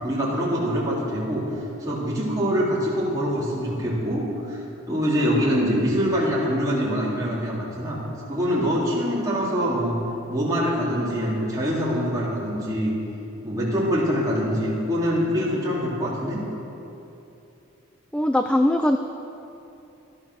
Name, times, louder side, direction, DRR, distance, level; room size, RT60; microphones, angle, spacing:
voice 1, 0.0-1.4 1.8-4.6 4.9-8.0 8.3-10.0 10.3-12.9 13.4-16.4, equal, 15° right, -7 dB, 3.5 m, -24 dB
voice 2, 18.1-19.0, left 1 dB, 5° left, 6 dB, 0.4 m, -20 dB
15.5 x 13.0 x 6.3 m, 2.9 s
head